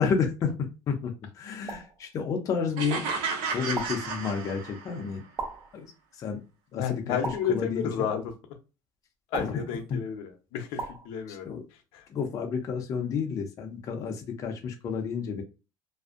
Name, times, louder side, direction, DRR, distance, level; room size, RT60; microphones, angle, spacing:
voice 1, 0.0-3.1 3.5-5.2 5.7-5.9 6.2-6.4 6.7-7.2 7.5-8.1 9.4-9.6 9.9-10.0 11.5-11.6 12.1-15.4, left 6 dB, 40° left, 0.5 m, -30 dB
sound 1, 1.7-2.0 3.8-4.1 5.4-5.8 7.2-7.7 9.3-9.7 10.8-11.1, right 4 dB, 25° right, 0.5 m, -36 dB
sound 2, 2.8-5.1, right 5 dB, 85° right, 0.6 m, -32 dB
voice 2, 6.7-8.3 9.3-11.5 11.9-12.1, left 8 dB, 80° left, 0.6 m, -31 dB
2.5 x 2.0 x 2.4 m
cardioid pair, 145°, 9 cm